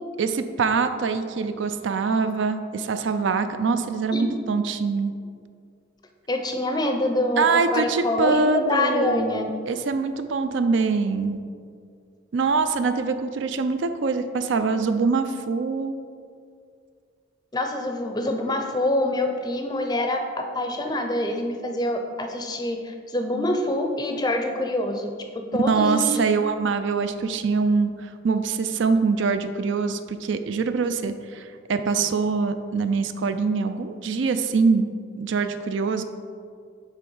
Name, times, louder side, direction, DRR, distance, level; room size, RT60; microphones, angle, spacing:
voice 1, 0.2-5.1 7.4-11.4 12.3-15.9 25.7-34.9 35.2-36.0, right 4 dB, 65° right, 9 dB, 0.4 m, -24 dB
voice 2, 6.3-9.5 17.5-20.2 20.5-25.1 25.5-26.3, left 1 dB, 20° left, 4 dB, 0.5 m, -25 dB
8.1 x 3.4 x 5.4 m, 2.2 s
head